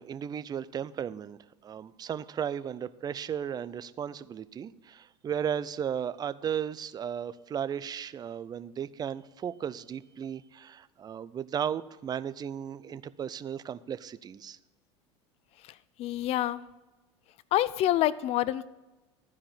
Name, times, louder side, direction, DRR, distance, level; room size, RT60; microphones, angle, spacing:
voice 1, 0.0-14.6, right 8 dB, 25° right, 16 dB, 0.5 m, -35 dB
voice 2, 16.0-16.6 17.5-18.7, left 13 dB, 45° left, 18 dB, 0.4 m, -27 dB
13.0 x 4.8 x 7.2 m, 1.1 s
hypercardioid pair, 90°, 15 cm